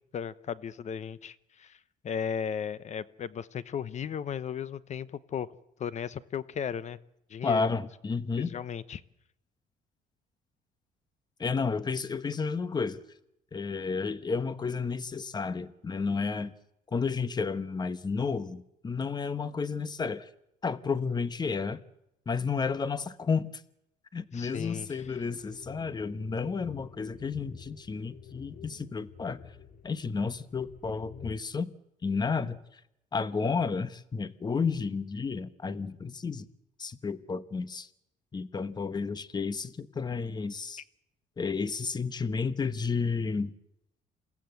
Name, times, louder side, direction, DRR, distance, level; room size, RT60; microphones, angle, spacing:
voice 1, 0.1-1.8 2.0-5.5 5.8-7.0 7.3-7.7 8.4-9.0 24.3-25.1, left 7 dB, 45° left, 17 dB, 1.0 m, -35 dB
voice 2, 7.4-8.5 11.4-13.0 13.5-16.5 16.9-20.3 20.6-21.8 22.3-23.6 24.1-29.4 29.8-31.7 32.0-32.6 33.1-36.5 36.8-37.9 38.3-40.8 41.4-43.5, left 5 dB, 25° left, 14 dB, 1.1 m, -31 dB
sound 1, 25.0-31.4, left 6 dB, 60° left, 2.4 m, -49 dB
28.0 x 16.0 x 7.9 m, 0.84 s
cardioid pair, 110°, 17 cm